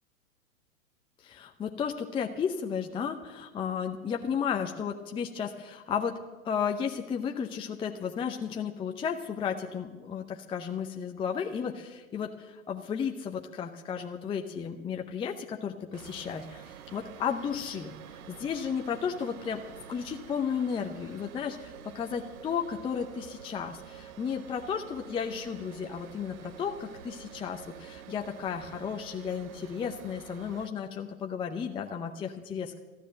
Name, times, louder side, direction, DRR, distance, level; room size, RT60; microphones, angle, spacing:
voice 1, 1.2-6.2 6.4-16.6 16.9-32.8, left 7 dB, 10° left, 4 dB, 0.6 m, -33 dB
sound 1, 15.9-30.7, right 9 dB, 70° right, 1.0 m, -48 dB
14.0 x 10.0 x 7.5 m, 1.2 s
hypercardioid pair, 115°, 44 cm